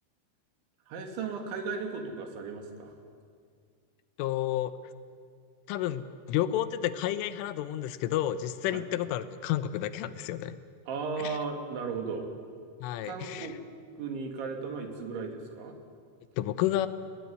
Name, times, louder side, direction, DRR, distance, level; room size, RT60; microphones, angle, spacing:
voice 1, 0.9-3.0 8.7-8.8 10.9-12.3 13.0-13.6 14.0-15.8, right 5 dB, 70° right, 4 dB, 4.7 m, -36 dB
voice 2, 4.2-4.7 5.7-10.6 11.2-11.4 12.8-13.5 16.4-16.9, left 12 dB, 80° left, 13 dB, 3.4 m, -30 dB
29.5 x 20.0 x 9.6 m, 2.1 s
omnidirectional pair, 5.7 m